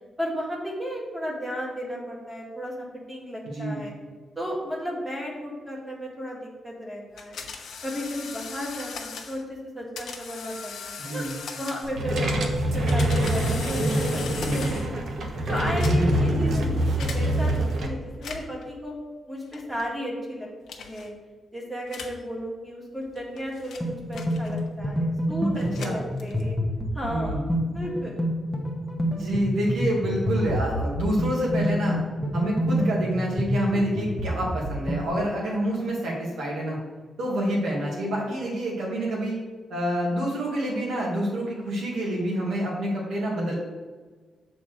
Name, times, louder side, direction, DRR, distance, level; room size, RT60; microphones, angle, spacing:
voice 1, 0.2-3.9 4.3-7.5 7.8-11.2 11.6-15.0 15.5-18.9 19.3-21.1 21.5-26.6 26.9-27.4 27.7-28.2, equal, 10° right, -3 dB, 1.7 m, -34 dB
voice 2, 3.4-3.8 11.0-11.4 15.9-16.4 25.5-26.0 27.1-27.5 29.1-32.0 32.3-36.8 37.2-39.4 39.7-43.5, right 1 dB, 90° right, -4 dB, 2.1 m, -27 dB
sound 1, 7.2-9.4 10.0-12.1 12.6-15.0 15.6-16.3 17.0-17.2 18.1-18.6 19.5-19.9 20.7-21.1 21.9-22.2 23.0-24.8 25.5-26.6, left 5 dB, 70° left, 1.0 m, -39 dB
sound 2, 11.8-17.9, right 1 dB, 55° right, 1.0 m, -25 dB
sound 3, 23.8-35.1, equal, 5° left, 1.0 m, -28 dB
7.2 x 4.3 x 6.4 m, 1.4 s
wide cardioid pair, 180°, 0 cm